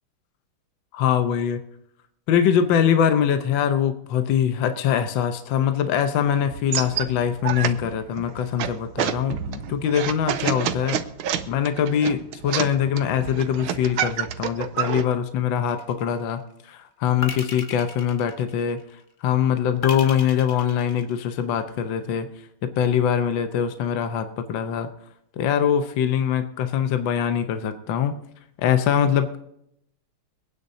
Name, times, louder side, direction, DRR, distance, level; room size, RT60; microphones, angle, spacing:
voice 1, 0.9-1.6 2.3-11.0 11.5-18.8 19.2-22.3 22.6-24.9 25.4-28.1 28.6-29.4, left 8 dB, 70° left, 8 dB, 1.5 m, -23 dB
sound 1, 6.5-15.0, right 10 dB, 80° right, 1.5 m, -29 dB
sound 2, 15.7-16.3 17.2-18.9 19.8-21.6, left 4 dB, 45° left, 0.6 m, -36 dB
24.5 x 9.6 x 2.7 m, 0.75 s
omnidirectional pair, 2.3 m